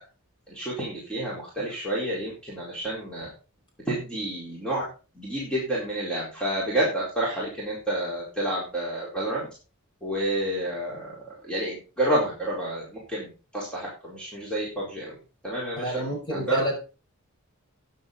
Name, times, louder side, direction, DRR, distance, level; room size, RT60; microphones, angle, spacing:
voice 1, 0.5-3.3 3.9-4.8 5.2-9.4 10.0-15.1 15.4-15.9 16.3-16.6, right 1 dB, 5° left, -6 dB, 4.3 m, -29 dB
voice 2, 15.8-16.7, equal, 20° left, 0 dB, 5.8 m, -29 dB
13.0 x 9.7 x 4.0 m, 0.33 s
head